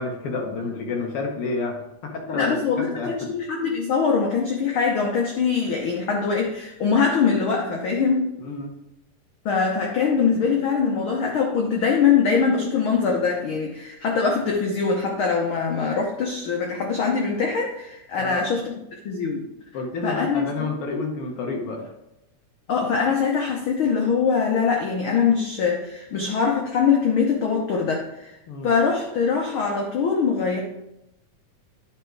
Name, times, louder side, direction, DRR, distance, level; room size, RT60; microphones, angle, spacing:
voice 1, 0.0-3.3 8.4-8.8 18.2-18.5 19.7-21.9 28.5-28.7, left 3 dB, 65° left, 1 dB, 1.5 m, -30 dB
voice 2, 2.3-8.3 9.4-18.7 19.0-19.4 20.0-20.7 22.7-28.3 28.6-30.6, left 5 dB, 85° left, 0 dB, 1.1 m, -23 dB
10.5 x 4.3 x 4.6 m, 0.86 s
omnidirectional pair, 3.6 m